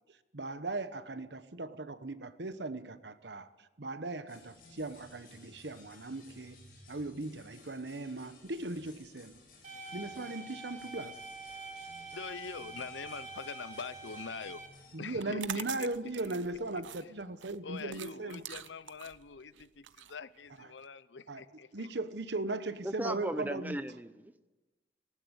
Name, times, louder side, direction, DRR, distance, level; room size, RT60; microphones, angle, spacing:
voice 1, 0.3-3.5 3.8-6.6 6.9-9.4 9.9-11.2 14.9-18.4 21.3-21.4 21.7-23.8, right 2 dB, 70° right, 1.2 m, -38 dB
sound 1, 4.3-15.0, left 2 dB, 50° left, 6.9 m, -58 dB
sound 2, 9.6-14.7, right 3 dB, 40° right, 2.8 m, -46 dB
voice 2, 12.1-14.6 15.0-16.4 17.0-17.1 17.6-21.9, left 5 dB, 80° left, 0.7 m, -44 dB
sound 3, 15.1-20.8, right 10 dB, 90° right, 0.7 m, -45 dB
voice 3, 22.8-24.5, right 1 dB, 10° right, 0.8 m, -37 dB
19.0 x 18.5 x 8.2 m
head